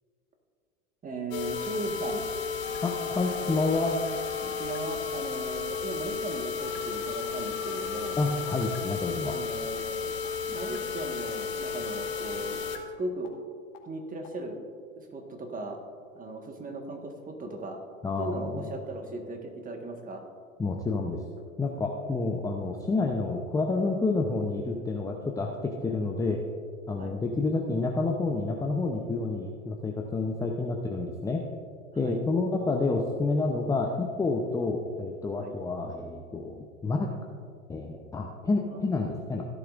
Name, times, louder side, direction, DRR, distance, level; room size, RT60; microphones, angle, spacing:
voice 1, 1.0-2.2 4.4-8.2 9.3-10.1 10.5-13.3 13.8-14.6 14.9-15.8 16.1-17.8 18.2-20.2 27.0-27.2 32.0-32.2 35.4-35.5, right 2 dB, 20° right, 3 dB, 1.5 m, -37 dB
sound 1, 1.3-12.8 13.2-13.3 13.7-13.8 14.2-14.3, left 6 dB, 55° left, 1.8 m, -33 dB
voice 2, 2.8-4.0 8.2-9.4 18.0-18.7 20.6-21.2 21.6-26.4 26.9-31.4 31.9-37.1 37.7-39.4, left 3 dB, 10° left, 1 dB, 0.7 m, -29 dB
16.5 x 11.0 x 2.5 m, 2.2 s
hypercardioid pair, 100°, 42 cm